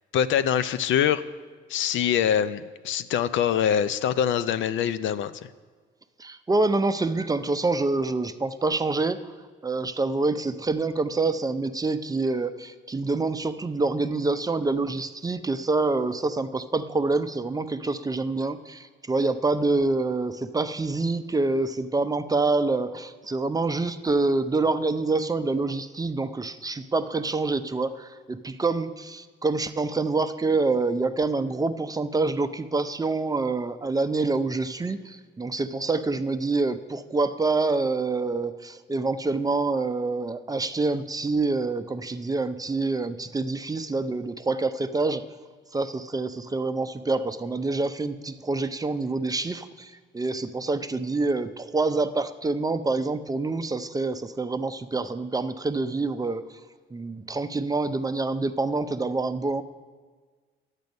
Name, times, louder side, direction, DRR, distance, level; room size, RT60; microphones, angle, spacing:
voice 1, 0.1-1.2 1.7-5.3, left 9 dB, 75° left, 13 dB, 0.5 m, -24 dB
voice 2, 6.2-9.3 9.6-45.3 45.7-56.4 56.9-59.6, right 3 dB, 20° right, 10 dB, 0.5 m, -26 dB
10.5 x 8.2 x 5.2 m, 1.5 s
cardioid pair, 90°, 20 cm